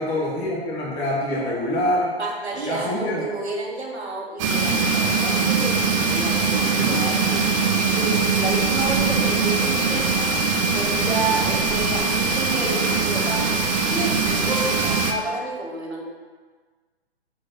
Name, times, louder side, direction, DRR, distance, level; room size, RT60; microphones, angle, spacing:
voice 1, 0.0-2.1 2.6-3.3 6.8-7.4, left 1 dB, 20° left, -4 dB, 1.1 m, -25 dB
voice 2, 2.2-7.3 7.8-10.4 10.7-16.0, right 2 dB, 80° right, -2 dB, 2.0 m, -30 dB
sound 1, 4.4-15.1, right 4 dB, 30° right, 0.7 m, -21 dB
6.2 x 4.5 x 6.3 m, 1.4 s
hypercardioid pair, 130°, 32 cm